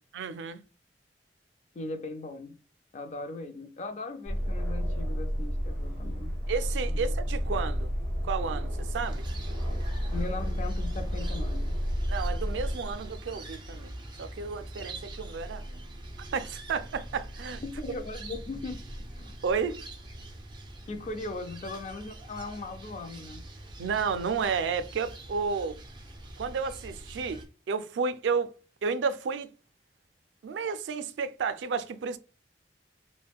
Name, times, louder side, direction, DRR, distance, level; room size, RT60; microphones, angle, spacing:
voice 1, 0.1-0.6 6.5-7.9 8.2-9.3 12.1-15.8 16.3-17.6 19.4-19.8 23.8-25.8 26.4-28.5 28.8-29.5 30.4-32.2, right 5 dB, 90° right, 0.4 m, -32 dB
voice 2, 1.7-2.6 2.9-6.3 6.9-7.1 10.1-11.8 17.6-19.4 20.9-23.4, left 3 dB, 40° left, 0.4 m, -39 dB
Aircraft, 4.3-12.7, equal, 10° left, 1.5 m, -31 dB
sound 1, 9.0-27.5, right 1 dB, 25° right, 0.5 m, -43 dB
3.4 x 2.1 x 2.3 m
head